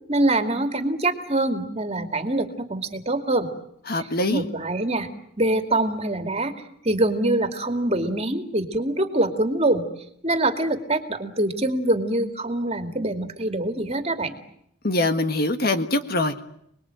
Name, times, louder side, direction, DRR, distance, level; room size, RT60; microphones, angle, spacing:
voice 1, 0.1-3.5 4.3-5.1 5.4-6.5 6.8-9.8 10.2-14.4, right 1 dB, 30° right, 6 dB, 2.5 m, -24 dB
voice 2, 3.9-4.4 14.8-16.4, left 2 dB, 45° left, 8 dB, 1.6 m, -23 dB
30.0 x 21.0 x 9.0 m, 0.73 s
head